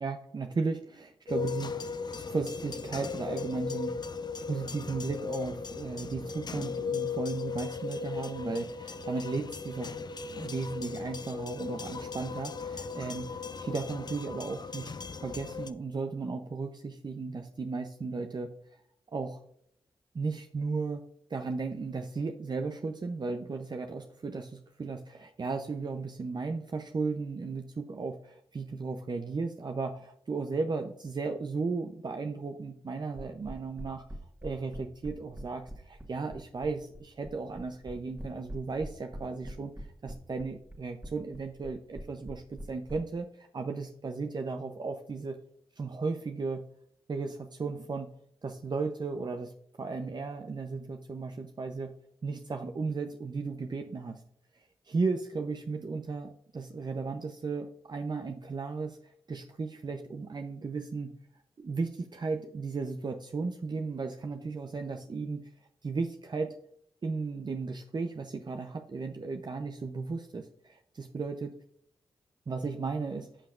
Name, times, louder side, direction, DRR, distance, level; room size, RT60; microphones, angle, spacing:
voice 1, 0.0-3.9 4.5-10.0 10.2-14.9 15.2-18.5 19.1-19.4 20.1-21.0 21.3-34.0 34.4-45.4 45.8-46.6 47.1-48.1 48.4-49.5 49.8-51.9 52.2-54.2 54.5-61.1 61.6-65.5 65.8-66.5 67.0-71.6 72.5-73.3, right 4 dB, 45° right, 5 dB, 0.7 m, -35 dB
sound 1, 1.3-15.7, left 5 dB, 45° left, 0.6 m, -37 dB
sound 2, 33.2-43.0, equal, 20° right, 1.6 m, -42 dB
11.0 x 5.7 x 2.5 m, 0.68 s
supercardioid pair, 40°, 10 cm